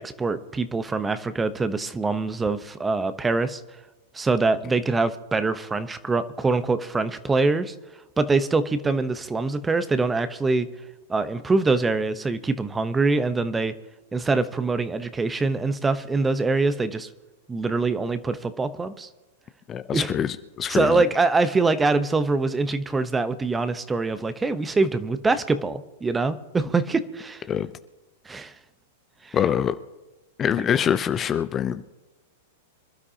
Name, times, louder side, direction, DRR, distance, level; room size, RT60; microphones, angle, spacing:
voice 1, 0.0-3.6 4.1-7.7 8.2-10.7 11.1-13.7 14.1-17.1 17.5-19.1 19.9-20.1 20.7-27.4 28.3-28.5 29.2-29.4 30.7-30.8, right 3 dB, 15° right, 12 dB, 0.9 m, -24 dB
voice 2, 19.7-21.0 27.5-27.7 29.3-29.8 30.4-31.8, left 9 dB, 25° left, 11 dB, 0.6 m, -24 dB
26.5 x 12.5 x 2.9 m, 1.1 s
hypercardioid pair, 100°, 0 cm